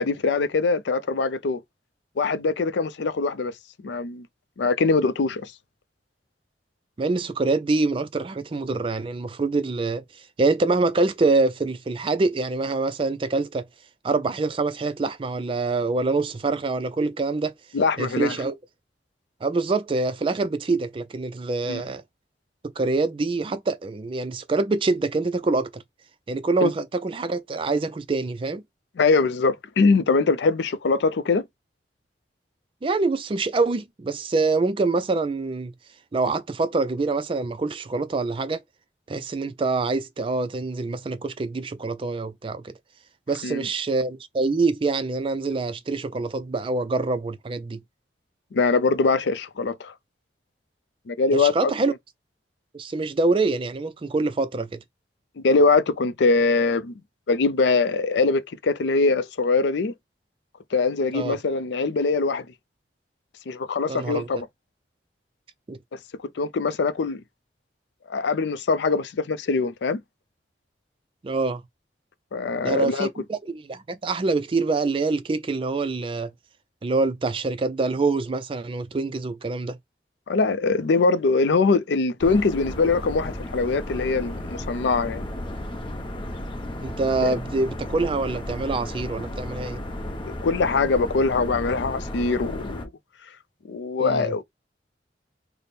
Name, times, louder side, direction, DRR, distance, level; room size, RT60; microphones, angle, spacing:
voice 1, 0.0-1.6 2.2-3.5 3.8-4.3 4.6-5.5 17.7-18.4 21.7-21.8 26.6-26.7 29.0-31.4 43.4-43.7 48.5-49.9 51.1-51.7 55.4-56.9 57.3-59.9 60.7-62.5 63.5-64.5 66.4-67.2 68.1-70.0 72.3-73.1 80.3-85.3 87.2-87.3 90.2-92.8 93.7-94.4, left 4 dB, 80° left, 0.4 m, -22 dB
voice 2, 7.0-10.0 10.4-13.7 14.0-17.5 18.0-18.6 19.4-22.0 22.8-25.8 26.3-28.6 32.8-35.7 36.1-38.6 39.1-42.7 43.3-47.8 51.3-51.9 52.7-54.8 61.1-61.4 63.9-64.4 65.7-65.8 71.2-71.6 72.6-76.3 76.8-79.8 86.8-89.8 94.0-94.3, right 3 dB, 30° right, 0.3 m, -25 dB
sound 1, 82.2-92.9, left 1 dB, 30° left, 0.6 m, -34 dB
3.3 x 2.1 x 4.1 m
head